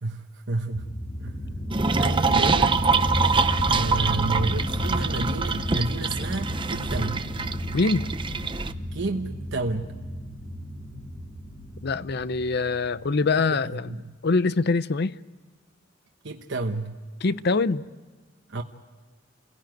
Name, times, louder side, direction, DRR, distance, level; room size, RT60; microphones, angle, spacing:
voice 1, 0.0-0.9 1.2-1.5 2.0-2.8 3.6-7.3 8.9-9.9 13.5-14.1 16.2-17.0 18.5-18.6, right 3 dB, 70° right, 1.1 m, -30 dB
sound 1, 0.7-13.1, equal, 40° left, 3.2 m, -32 dB
sound 2, 1.7-8.7, right 4 dB, 25° right, 0.7 m, -25 dB
voice 2, 7.7-8.1 11.8-13.9 14.2-15.2 17.2-17.9, left 3 dB, 60° left, 0.7 m, -24 dB
29.5 x 17.0 x 9.3 m
head